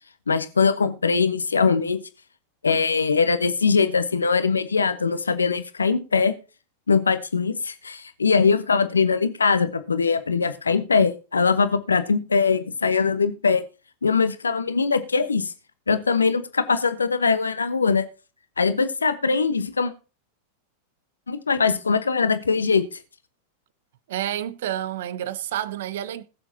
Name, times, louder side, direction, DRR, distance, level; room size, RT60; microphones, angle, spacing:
voice 1, 0.3-2.0 2.6-6.3 6.9-13.6 14.0-15.5 15.9-18.0 18.6-19.9 21.3-23.0, left 5 dB, 80° left, 1.1 m, -21 dB
voice 2, 24.1-26.2, right 11 dB, 60° right, 0.9 m, -29 dB
20.0 x 6.9 x 2.8 m
figure-of-eight pair, 90°, 0 cm